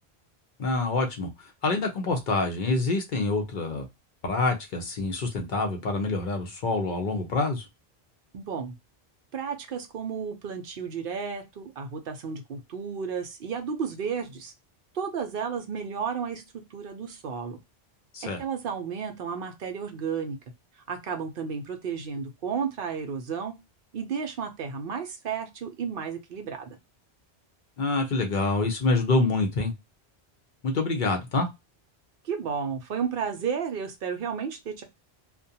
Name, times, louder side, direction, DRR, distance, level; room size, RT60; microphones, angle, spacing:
voice 1, 0.6-3.9 4.2-7.7 18.1-18.4 27.8-29.7 30.6-31.5, left 3 dB, 55° left, 4 dB, 0.6 m, -26 dB
voice 2, 8.3-8.7 9.3-14.5 14.9-16.4 16.7-17.6 18.2-20.4 20.8-23.5 23.9-26.8 32.2-34.8, right 6 dB, 60° right, 6 dB, 0.7 m, -32 dB
2.4 x 2.2 x 2.6 m, 0.22 s
omnidirectional pair, 1.1 m